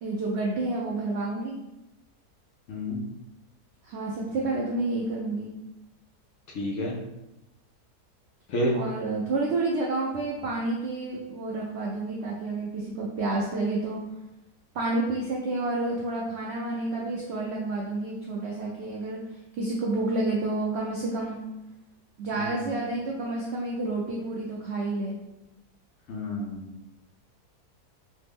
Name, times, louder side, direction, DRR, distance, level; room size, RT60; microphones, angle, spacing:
voice 1, 0.0-1.6 3.8-5.5 8.7-14.0 14.7-19.2 19.6-21.4 22.2-25.1, right 2 dB, 85° right, -3 dB, 0.5 m, -29 dB
voice 2, 2.7-3.0 6.5-6.9 8.5-8.7 22.4-22.6 26.1-26.7, left 1 dB, 70° left, -3 dB, 0.8 m, -29 dB
3.2 x 2.1 x 3.4 m, 0.92 s
omnidirectional pair, 1.7 m